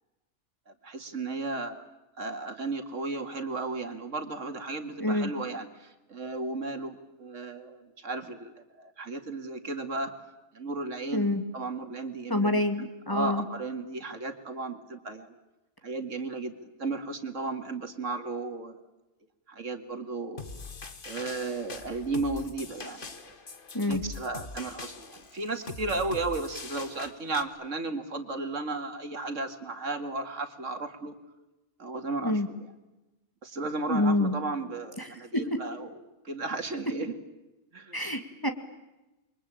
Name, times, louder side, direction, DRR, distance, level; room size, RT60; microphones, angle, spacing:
voice 1, 0.7-1.8 2.2-10.1 10.5-15.4 15.8-16.5 16.8-18.8 19.5-20.4 21.0-23.3 23.9-31.1 31.8-32.7 33.4-36.0 36.2-37.2 37.7-38.0, right 3 dB, 85° right, 7 dB, 2.5 m, -34 dB
voice 2, 5.0-5.3 11.1-11.4 12.3-13.4 23.7-24.0 32.2-32.5 33.9-34.3 35.0-35.1 35.3-35.4 37.9-38.5, left 1 dB, 15° left, 7 dB, 2.3 m, -27 dB
sound 1, 20.4-27.4, left 4 dB, 45° left, 1.7 m, -42 dB
28.5 x 23.0 x 8.9 m, 1.0 s
omnidirectional pair, 1.3 m